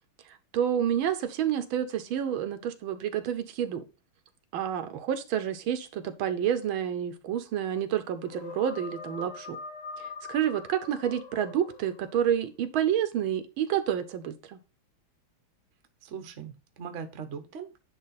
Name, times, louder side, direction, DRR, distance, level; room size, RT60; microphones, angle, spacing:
voice 1, 0.3-3.8 4.5-9.6 10.0-14.6, right 9 dB, 80° right, 1.5 m, -29 dB
sound 1, 8.2-12.3, left 4 dB, 40° left, 1.2 m, -43 dB
voice 2, 16.0-17.8, right 6 dB, 50° right, 1.0 m, -40 dB
9.6 x 3.3 x 4.0 m
omnidirectional pair, 2.2 m